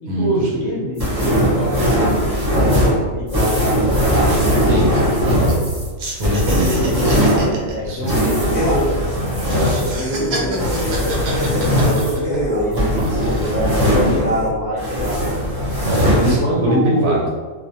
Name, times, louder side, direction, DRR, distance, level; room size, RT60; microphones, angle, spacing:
voice 1, 0.0-4.3 6.6-8.8 9.4-12.8 13.1-15.2 16.1-17.2, equal, 70° left, -5 dB, 0.8 m, -25 dB
sound 1, 1.0-14.5 14.8-16.3, equal, 25° right, 0.5 m, -19 dB
sound 2, 3.2-3.3 3.6-3.8 4.1-5.7 6.0-9.1 9.4-12.6 13.0-13.6, right 2 dB, 65° right, 0.7 m, -30 dB
voice 2, 6.1-7.3 7.8-8.3 9.7-9.8 12.7-13.2 15.8-17.3, equal, 85° right, -4 dB, 1.1 m, -22 dB
sound 3, 7.5-7.8 8.1-8.2 8.5-8.9 9.4-9.5 9.9-12.7 13.3-13.4 13.7-14.5, equal, 15° left, 0.8 m, -25 dB
2.4 x 2.0 x 2.6 m, 1.4 s
omnidirectional pair, 1.4 m